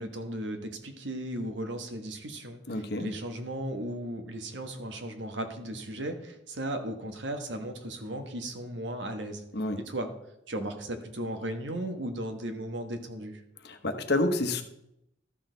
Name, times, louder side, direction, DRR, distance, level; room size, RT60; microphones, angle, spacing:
voice 1, 0.0-9.4 9.9-10.1 10.5-13.4, right 1 dB, 90° right, 6 dB, 1.3 m, -36 dB
voice 2, 2.7-3.1 9.5-9.8 13.6-14.6, left 2 dB, 60° left, 7 dB, 1.0 m, -28 dB
13.0 x 6.3 x 3.9 m, 0.81 s
head